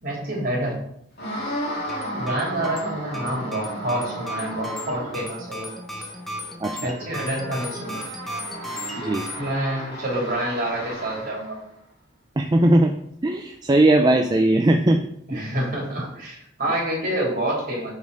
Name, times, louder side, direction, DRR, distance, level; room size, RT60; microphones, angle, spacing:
voice 1, 0.0-0.8 2.2-5.7 6.8-8.1 9.4-11.6 15.3-17.9, right 1 dB, 45° right, -2 dB, 3.0 m, -27 dB
sound 1, 1.2-11.6, equal, 55° left, 2.5 m, -35 dB
sound 2, 1.8-9.4, equal, ahead, 1.0 m, -36 dB
voice 2, 6.6-7.0 9.0-9.3 12.4-12.9 13.2-15.0 15.3-15.4, right 1 dB, 20° right, 4 dB, 0.4 m, -19 dB
6.3 x 5.5 x 4.8 m, 0.70 s
head